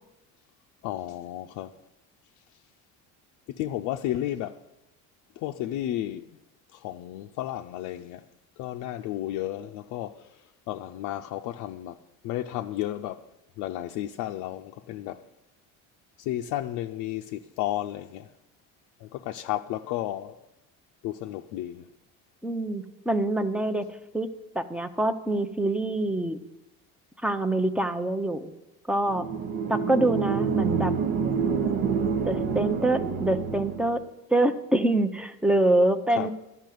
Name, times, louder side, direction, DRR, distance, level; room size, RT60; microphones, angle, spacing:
voice 1, 0.8-1.8 3.6-4.6 5.4-6.3 6.7-8.2 8.6-10.4 10.7-12.0 12.2-13.2 13.6-15.2 16.2-18.3 19.0-20.4 21.0-21.9 36.2-36.3, left 13 dB, 75° left, 0.5 m, -32 dB
voice 2, 22.4-23.9 24.1-24.3 24.5-26.4 27.2-28.5 28.9-29.3 29.7-30.9 31.4-34.0 34.3-36.3, right 2 dB, 5° right, 0.6 m, -25 dB
sound 1, 29.1-34.0, right 6 dB, 70° right, 1.1 m, -27 dB
12.0 x 5.7 x 9.2 m
cardioid pair, 130°, 31 cm